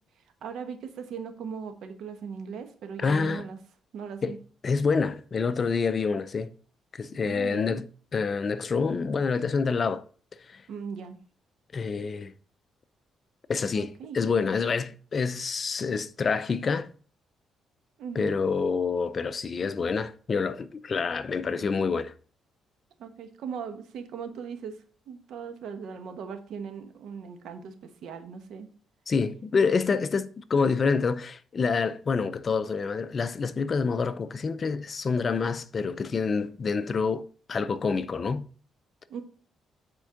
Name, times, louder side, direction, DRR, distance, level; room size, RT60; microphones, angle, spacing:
voice 1, 0.4-3.6 3.9-4.4 7.2-7.8 10.7-11.2 13.7-14.2 18.0-18.4 23.0-28.7 39.1-39.2, right 6 dB, 75° right, 1.1 m, -39 dB
voice 2, 3.0-3.4 4.2-4.4 4.6-6.5 6.9-7.9 8.1-10.0 10.5-10.6 11.7-12.3 13.5-16.9 18.2-22.1 29.1-38.5, left 5 dB, 40° left, 0.5 m, -27 dB
8.9 x 4.5 x 3.8 m
cardioid pair, 90°, 0 cm